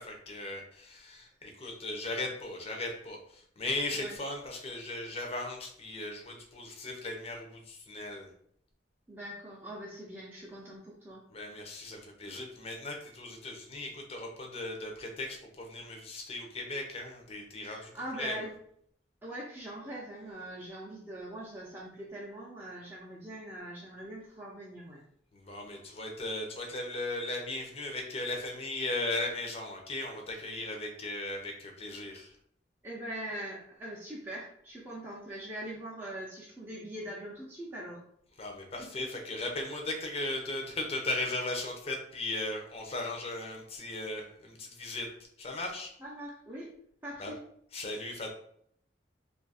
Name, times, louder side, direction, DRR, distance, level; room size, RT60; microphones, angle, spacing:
voice 1, 0.0-8.3 11.3-17.9 18.2-18.4 25.3-32.4 38.4-45.1 45.4-45.9 47.2-47.3 47.7-48.3, left 2 dB, 35° left, 2 dB, 0.6 m, -37 dB
voice 2, 9.1-11.2 17.6-18.5 19.2-25.0 32.8-38.0 38.8-38.9 46.0-46.7 47.0-47.4, right 1 dB, 10° right, -6 dB, 0.6 m, -42 dB
2.7 x 2.4 x 4.0 m, 0.67 s
head